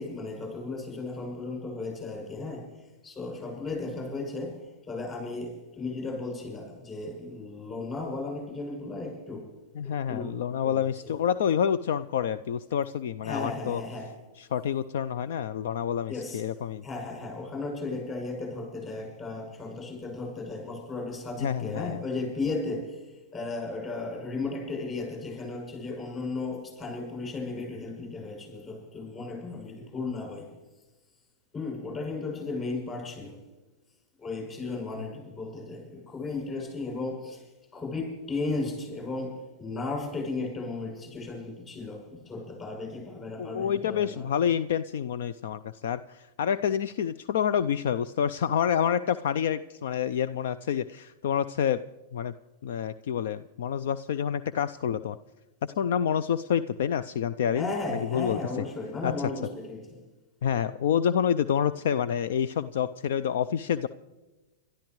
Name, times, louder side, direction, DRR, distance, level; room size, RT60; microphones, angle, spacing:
voice 1, 0.0-2.7 3.0-9.5 9.8-10.9 13.2-14.2 16.1-16.4 16.8-23.0 23.3-30.5 31.5-33.4 34.2-44.3 57.5-60.0, left 3 dB, 25° left, 7.0 m, -35 dB
voice 2, 9.7-13.8 14.4-16.8 21.4-22.0 43.4-51.8 52.1-52.3 52.6-55.2 55.6-57.7 58.1-58.4 59.0-59.1 60.4-63.9, left 8 dB, 65° left, 0.4 m, -28 dB
28.0 x 12.5 x 3.1 m
hypercardioid pair, 105°, 0 cm